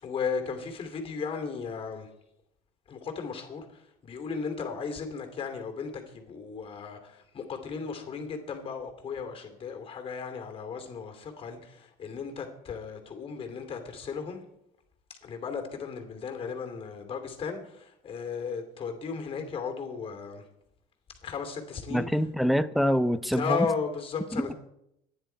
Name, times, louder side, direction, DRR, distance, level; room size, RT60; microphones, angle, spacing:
voice 1, 0.0-2.1 2.9-14.4 15.1-20.5 21.2-22.1 23.3-24.5, left 5 dB, 30° left, 2.7 m, -35 dB
voice 2, 21.9-23.7 24.3-24.5, equal, ahead, 0.5 m, -25 dB
25.5 x 10.5 x 4.5 m
cardioid pair, 145°, 19 cm